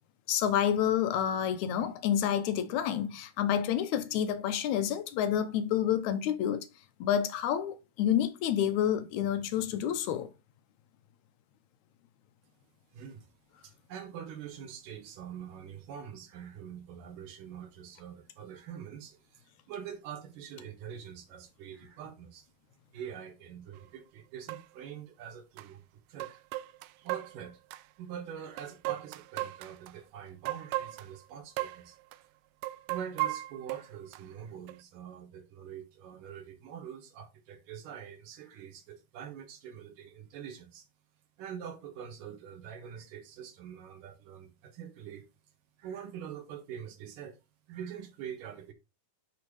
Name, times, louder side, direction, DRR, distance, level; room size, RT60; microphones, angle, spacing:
voice 1, 0.3-6.7 7.0-10.3, left 9 dB, 90° left, 1.6 m, -29 dB
voice 2, 12.9-13.3 13.6-22.5 22.9-26.4 27.0-27.6 28.0-32.0 32.9-40.9 41.4-45.3 45.8-47.4 47.7-48.7, right 8 dB, 65° right, 2.8 m, -44 dB
sound 1, 23.8-23.9 24.5-24.6 25.6-25.7 26.2-27.8 28.6-29.9 30.4-31.2 31.6-31.8 32.1-32.2 32.6-34.2 34.7-34.8, right 16 dB, 90° right, 1.9 m, -36 dB
10.5 x 3.5 x 4.7 m
omnidirectional pair, 4.3 m